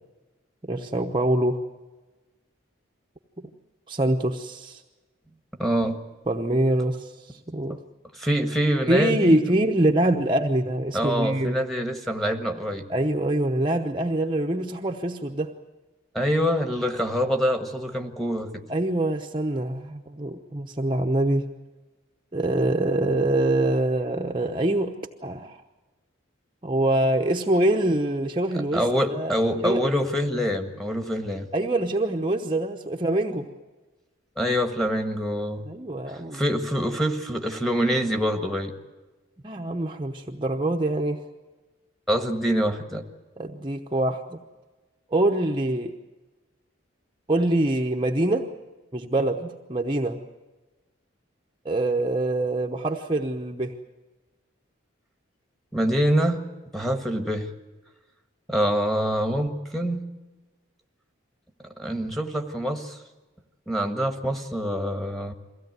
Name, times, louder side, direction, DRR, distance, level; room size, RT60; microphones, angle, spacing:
voice 1, 0.6-1.6 3.9-4.8 6.3-7.8 8.9-11.6 12.9-15.5 18.7-21.5 22.3-24.9 25.2-25.6 26.6-28.8 29.1-29.3 29.6-29.9 31.5-33.4 35.7-36.4 39.4-41.2 43.4-44.4 45.1-45.9 47.3-48.4 48.9-50.2 51.6-53.7, right 1 dB, 25° right, 2 dB, 0.9 m, -24 dB
voice 2, 5.6-6.0 8.1-9.5 10.9-12.9 16.1-18.6 28.5-31.5 34.4-35.6 36.1-38.7 42.1-43.1 55.7-56.4 56.7-57.5 58.5-60.1 61.8-63.0 63.7-65.3, equal, ahead, 3 dB, 1.6 m, -25 dB
23.0 x 16.5 x 9.4 m, 1.2 s
head